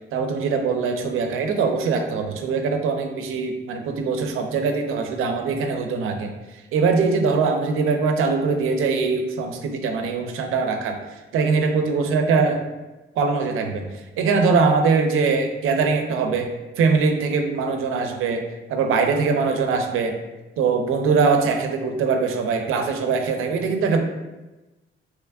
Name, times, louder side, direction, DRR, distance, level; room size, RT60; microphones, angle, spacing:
voice 1, 0.1-12.6 13.2-13.9 14.2-16.5 16.8-18.4 18.7-20.1 20.6-24.0, right 4 dB, 85° right, 4 dB, 0.5 m, -22 dB
3.0 x 2.3 x 3.4 m, 1.1 s
cardioid pair, 125°, 21 cm